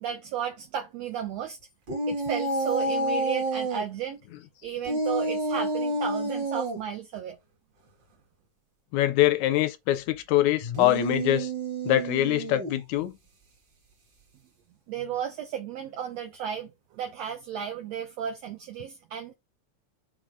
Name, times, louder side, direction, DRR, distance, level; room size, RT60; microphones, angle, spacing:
voice 1, 0.0-1.6 2.1-4.2 4.6-7.4 14.9-19.3, right 9 dB, 65° right, 1.9 m, -34 dB
sound 1, 1.9-3.8 4.8-6.8 10.6-12.8, right 1 dB, 40° right, 2.2 m, -29 dB
voice 2, 8.9-11.5 11.9-13.1, left 14 dB, 80° left, 1.8 m, -24 dB
7.0 x 3.5 x 5.1 m
omnidirectional pair, 3.7 m